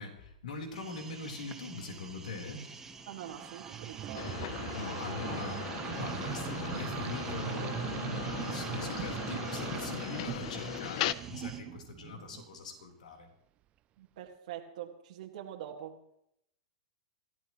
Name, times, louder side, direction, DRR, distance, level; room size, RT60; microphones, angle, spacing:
voice 1, 0.0-2.6 4.7-5.6 5.9-13.3, left 3 dB, 85° left, 3 dB, 4.1 m, -42 dB
sound 1, 0.7-11.6, right 4 dB, 10° right, 2.4 m, -50 dB
voice 2, 3.1-4.4 4.7-5.1 14.0-16.0, right 11 dB, 75° right, -2 dB, 2.1 m, -45 dB
sound 2, 3.2-12.5, right 13 dB, 30° right, 0.5 m, -40 dB
sound 3, 4.1-11.1, left 13 dB, 60° left, 0.8 m, -38 dB
29.0 x 14.0 x 3.2 m, 0.76 s
hypercardioid pair, 135°, 4 cm